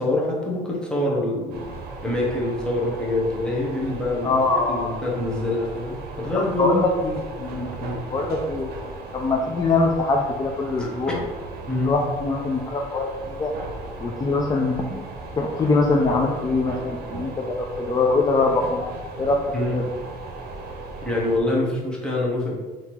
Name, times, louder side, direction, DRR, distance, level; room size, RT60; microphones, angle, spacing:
voice 1, 0.0-1.8 2.0-4.3 4.7-6.8 7.8-8.0 10.8-11.2 11.7-12.0 19.5-19.8 21.0-22.5, left 1 dB, 5° left, -4 dB, 1.2 m, -25 dB
sound 1, 1.5-21.4, right 3 dB, 65° right, 0.8 m, -37 dB
voice 2, 4.2-5.0 6.3-7.7 8.1-8.7 9.1-11.2 11.8-13.5 14.0-15.0 15.4-18.9 19.2-19.4 19.7-19.8, left 3 dB, 25° left, 0 dB, 0.5 m, -23 dB
3.6 x 2.9 x 4.5 m, 1.3 s
cardioid pair, 110°, 17 cm